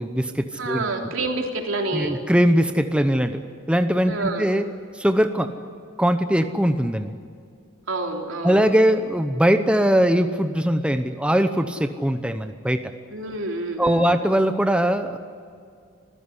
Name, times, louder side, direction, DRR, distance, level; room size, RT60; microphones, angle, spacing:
voice 1, 0.0-0.8 1.9-3.4 3.7-4.7 4.9-5.5 6.0-7.2 8.4-12.9 13.8-15.2, equal, 5° right, 8 dB, 0.8 m, -21 dB
voice 2, 0.5-2.2 4.1-4.5 7.9-8.6 13.1-14.1, right 2 dB, 85° right, 2 dB, 3.5 m, -28 dB
25.5 x 15.5 x 9.8 m, 2.3 s
head